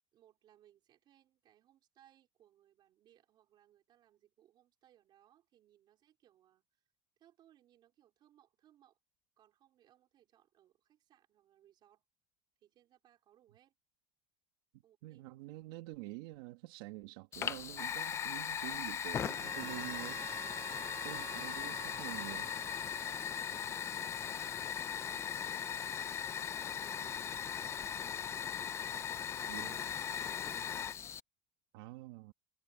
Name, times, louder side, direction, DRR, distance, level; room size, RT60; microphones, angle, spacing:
voice 1, 0.1-6.8 7.2-9.0 9.4-12.0 12.6-13.7 14.8-15.2 23.0-28.6 29.4-29.8 30.3-30.9, right 12 dB, 40° right, 4.4 m, -67 dB
voice 2, 15.0-20.2 21.0-22.5 29.5-29.8 31.7-32.3, right 19 dB, 80° right, 2.1 m, -47 dB
Fire, 17.3-31.2, left 8 dB, 20° left, 0.4 m, -39 dB
Harmonica, 19.2-24.1, right 19 dB, 60° right, 1.1 m, -51 dB
cardioid pair, 160°, 12 cm